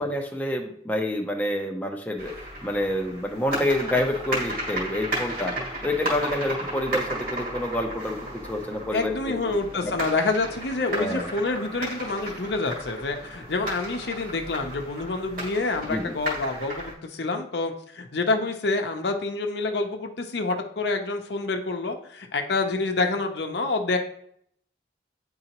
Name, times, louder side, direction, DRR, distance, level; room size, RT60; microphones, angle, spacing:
voice 1, 0.0-2.3 2.6-5.5 5.8-9.5 9.8-9.9 10.9-11.3 15.8-16.1, left 1 dB, 10° left, 1 dB, 0.6 m, -28 dB
sound 1, 2.2-16.9, right 1 dB, 50° right, 1.9 m, -34 dB
voice 2, 8.9-24.0, left 3 dB, 70° left, 4 dB, 0.7 m, -27 dB
8.9 x 3.8 x 2.9 m, 0.68 s
head